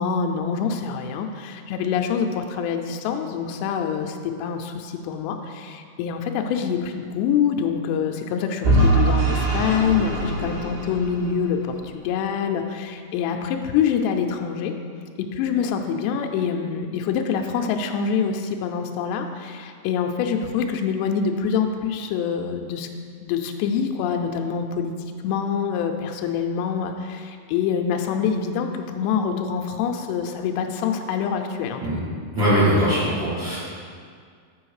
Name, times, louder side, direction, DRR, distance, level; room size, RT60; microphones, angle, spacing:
voice 1, 0.0-14.7 15.2-22.9 23.2-31.8, left 7 dB, 85° left, 4 dB, 2.5 m, -25 dB
Vehicle / Engine, 8.6-11.7, right 2 dB, 90° right, 4.1 m, -22 dB
voice 2, 32.3-33.6, equal, 45° right, -11 dB, 1.5 m, -20 dB
7.0 x 6.2 x 4.7 m, 2.1 s
omnidirectional pair, 5.3 m